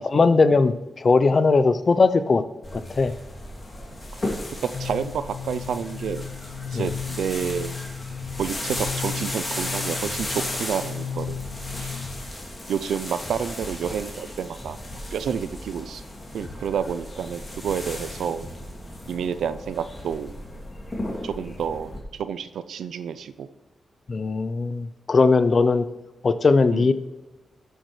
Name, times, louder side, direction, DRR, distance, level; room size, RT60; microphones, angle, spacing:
voice 1, 0.1-2.4 2.7-3.1 6.7-6.9 24.1-25.8 26.2-26.9, left 4 dB, 45° left, 12 dB, 0.5 m, -19 dB
sound 1, 2.6-22.0, left 1 dB, 30° left, 2.6 m, -35 dB
voice 2, 3.9-4.3 4.6-6.3 6.7-7.7 8.4-11.4 11.8-12.0 12.7-14.8 15.1-16.0 16.3-18.5 19.1-20.3 21.2-23.5 26.7-26.9, right 7 dB, 85° right, 13 dB, 0.4 m, -29 dB
sound 2, 4.7-12.3, left 8 dB, 85° left, 1.8 m, -35 dB
14.0 x 8.0 x 3.2 m, 1.1 s
cardioid pair, 75°, 0 cm